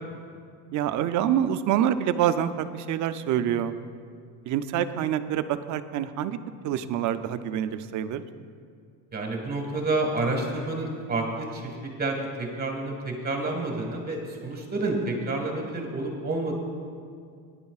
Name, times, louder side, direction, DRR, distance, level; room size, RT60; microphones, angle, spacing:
voice 1, 0.7-3.7 4.5-6.4 6.6-8.2, right 10 dB, 50° right, 11 dB, 0.5 m, -26 dB
voice 2, 9.1-11.7 12.0-16.5, right 2 dB, 25° right, 1 dB, 1.6 m, -29 dB
20.5 x 10.5 x 2.4 m, 2.3 s
cardioid pair, 150°, 40 cm